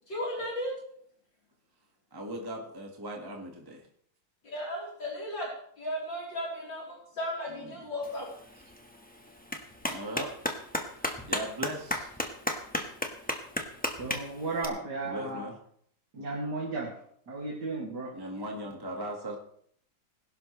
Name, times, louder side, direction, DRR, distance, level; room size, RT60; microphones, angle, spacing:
voice 1, 0.1-0.8 4.4-5.5 5.8-8.3, equal, 60° left, -5 dB, 4.7 m, -35 dB
voice 2, 2.1-3.9 7.5-7.9 9.8-10.3 10.6-10.7 11.0-12.1 15.0-15.5 18.1-19.4, right 1 dB, 10° right, 0 dB, 1.7 m, -38 dB
Clapping, 8.0-14.6, left 1 dB, 5° left, 1.3 m, -35 dB
voice 3, 14.0-15.5 16.1-16.9 17.3-18.1, right 3 dB, 55° right, -3 dB, 3.0 m, -34 dB
21.0 x 12.0 x 3.3 m, 0.64 s
omnidirectional pair, 2.2 m